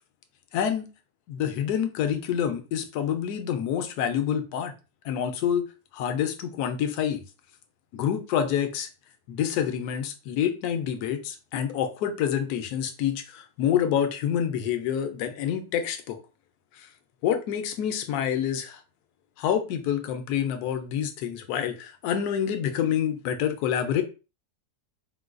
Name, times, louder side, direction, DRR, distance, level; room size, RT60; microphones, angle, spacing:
voice 1, 0.5-0.9 1.3-4.7 5.0-5.6 5.9-7.2 7.9-8.9 9.3-16.2 16.7-16.9 17.2-18.8 19.4-24.0, left 9 dB, 75° left, 1.1 m, -27 dB
4.4 x 2.2 x 2.4 m
omnidirectional pair, 1.7 m